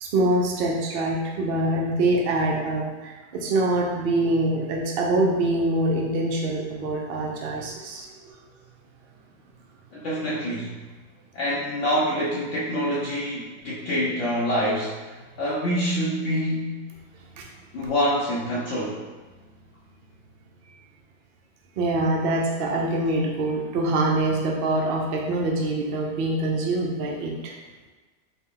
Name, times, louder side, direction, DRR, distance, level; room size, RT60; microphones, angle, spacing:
voice 1, 0.0-8.4 17.4-17.5 17.8-17.9 21.8-27.5, right 2 dB, 75° right, -1 dB, 0.5 m, -24 dB
voice 2, 9.9-10.7 11.3-14.9 15.4-16.8 17.7-19.0, equal, 65° left, -7 dB, 0.8 m, -26 dB
4.1 x 2.1 x 3.6 m, 1.3 s
omnidirectional pair, 1.6 m